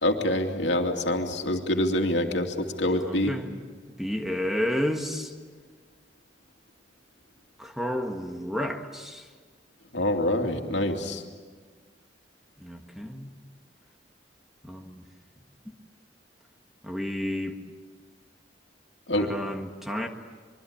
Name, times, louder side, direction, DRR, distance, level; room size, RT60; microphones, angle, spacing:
voice 1, 0.0-3.3 9.9-11.2 19.1-19.3, left 1 dB, 75° left, 3 dB, 2.6 m, -26 dB
voice 2, 2.9-3.5 4.0-5.3 7.6-9.2 12.6-13.3 14.6-15.0 16.8-17.6 19.2-20.1, equal, ahead, 4 dB, 1.6 m, -31 dB
25.0 x 23.5 x 8.7 m, 1.5 s
head